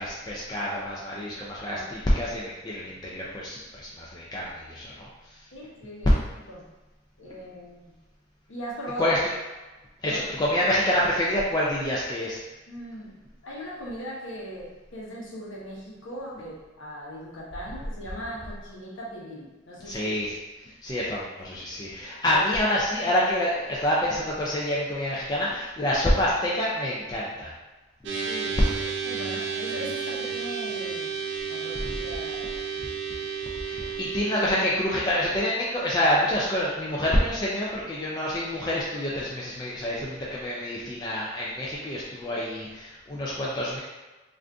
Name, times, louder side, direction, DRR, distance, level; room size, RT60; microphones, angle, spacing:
voice 1, 0.0-5.1 9.0-9.2 10.0-12.4 19.9-20.3 20.6-27.5 31.8-32.0 33.6-43.8, left 1 dB, 20° left, -6 dB, 0.3 m, -27 dB
voice 2, 1.4-1.9 5.5-6.1 6.5-6.6 7.2-7.9 8.5-9.2 10.1-10.2 12.7-13.1 13.4-20.1 22.3-22.4 28.1-28.6 29.0-31.2 31.5-32.6, equal, 65° left, -5 dB, 0.8 m, -39 dB
sound 1, 28.1-34.6, right 6 dB, 55° right, 0.4 m, -32 dB
2.5 x 2.4 x 3.4 m, 1.1 s
head